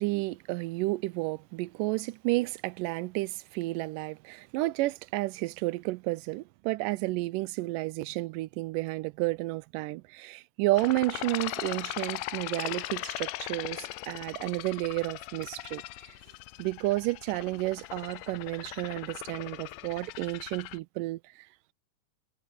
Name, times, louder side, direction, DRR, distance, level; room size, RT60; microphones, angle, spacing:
voice 1, 0.0-15.8 16.6-21.5, right 20 dB, 85° right, 2.1 m, -31 dB
sound 1, 10.8-20.8, left 17 dB, 85° left, 2.2 m, -39 dB
omnidirectional pair, 3.8 m